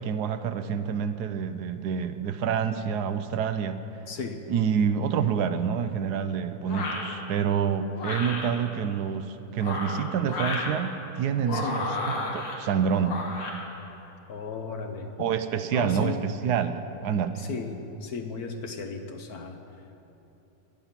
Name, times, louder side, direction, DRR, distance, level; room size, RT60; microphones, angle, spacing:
voice 1, 0.0-3.8 4.5-11.9 12.3-13.2 15.2-17.5, right 7 dB, 70° right, 10 dB, 1.1 m, -27 dB
voice 2, 4.1-4.4 11.5-11.8 14.0-15.1 15.7-16.2 17.4-19.6, left 4 dB, 60° left, 5 dB, 1.3 m, -35 dB
sound 1, 6.7-7.1 7.9-8.5 9.5-10.7 11.4-12.5 13.0-13.6, left 2 dB, 85° left, 2.5 m, -32 dB
17.5 x 10.5 x 5.8 m, 3.0 s
omnidirectional pair, 1.9 m